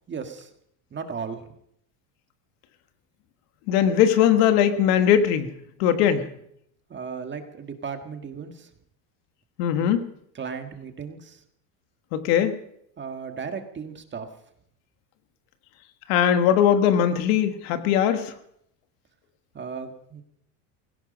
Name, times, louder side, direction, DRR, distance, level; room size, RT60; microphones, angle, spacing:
voice 1, 0.1-0.5 0.9-1.4 6.9-8.7 10.3-11.4 13.0-14.3 19.5-20.2, right 6 dB, 25° right, 6 dB, 1.7 m, -35 dB
voice 2, 3.7-5.5 5.8-6.3 9.6-10.0 12.1-12.6 16.1-18.3, left 9 dB, 70° left, 9 dB, 1.6 m, -20 dB
17.0 x 16.5 x 5.1 m, 0.72 s
supercardioid pair, 135°, 46 cm